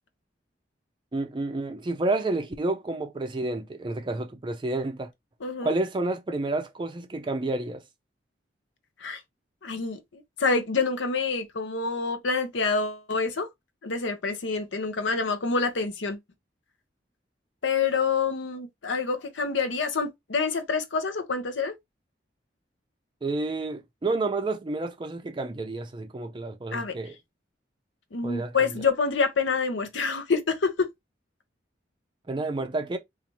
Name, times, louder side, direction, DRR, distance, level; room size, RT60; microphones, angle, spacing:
voice 1, 1.1-5.1 5.6-7.8 23.2-27.1 28.2-28.7 32.3-33.0, right 2 dB, 25° right, 0.4 m, -30 dB
voice 2, 5.4-5.7 9.0-9.2 9.6-13.5 13.8-16.2 17.6-21.7 26.7-26.9 28.1-30.9, left 4 dB, 85° left, 0.7 m, -27 dB
4.1 x 2.5 x 2.9 m
head